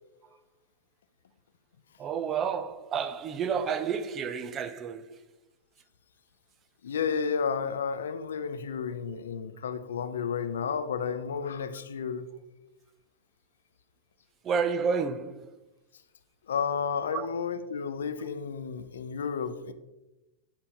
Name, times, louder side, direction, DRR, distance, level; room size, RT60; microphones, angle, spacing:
voice 1, 2.0-5.2 9.1-9.2 14.4-15.6 17.1-17.3, right 6 dB, 30° right, 0.5 m, -31 dB
voice 2, 6.8-12.2 16.5-19.7, left 6 dB, 85° left, 0.5 m, -32 dB
8.8 x 4.3 x 2.8 m
hypercardioid pair, 120°, 0 cm